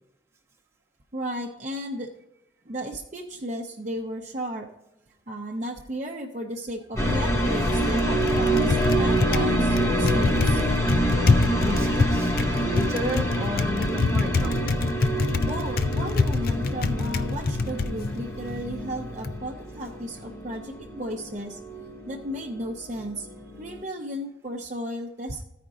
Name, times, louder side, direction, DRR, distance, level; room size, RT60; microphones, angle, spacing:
voice 1, 1.1-2.1 2.7-4.7 5.3-10.7 15.4-21.6 22.1-23.3 23.6-25.4, equal, 40° right, 1 dB, 0.6 m, -34 dB
Typing, 6.9-19.4, left 3 dB, 55° left, 0.5 m, -27 dB
sound 1, 7.0-22.7 23.0-23.8, right 1 dB, 15° left, 0.7 m, -26 dB
voice 2, 11.6-12.3 12.6-14.7, equal, 15° right, -1 dB, 1.0 m, -32 dB
14.0 x 5.1 x 3.6 m, 0.88 s
head